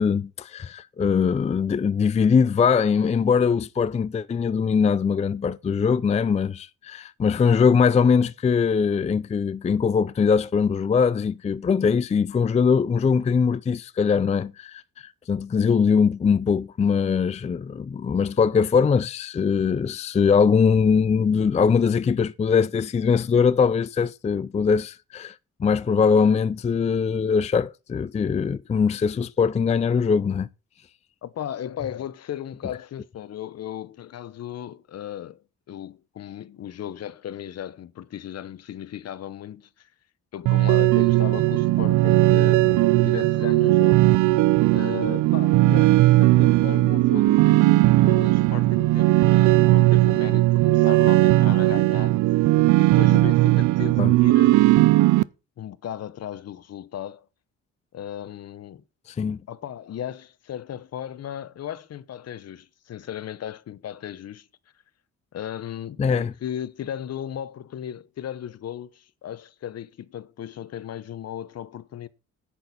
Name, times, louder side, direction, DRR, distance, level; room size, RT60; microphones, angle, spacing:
voice 1, 0.0-30.5 54.0-54.1 59.1-59.4 66.0-66.3, left 6 dB, 20° left, 0.4 m, -21 dB
voice 2, 31.2-39.9 40.3-44.0 44.7-52.1 52.8-54.6 55.6-57.3 57.9-58.8 59.5-64.5 65.3-72.1, left 10 dB, 55° left, 0.9 m, -36 dB
sound 1, 40.5-55.2, right 18 dB, 80° right, 0.5 m, -18 dB
10.5 x 8.8 x 4.2 m
cardioid pair, 90°, 30 cm